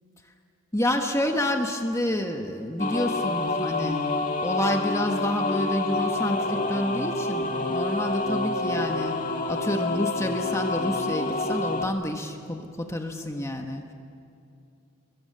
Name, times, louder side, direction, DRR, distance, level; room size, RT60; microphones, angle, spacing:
voice 1, 0.7-4.0 4.4-9.2 9.5-13.9, left 1 dB, 15° left, 4 dB, 1.4 m, -28 dB
sound 1, 2.8-11.9, left 2 dB, 40° left, 1.8 m, -28 dB
29.5 x 22.5 x 6.8 m, 2.7 s
head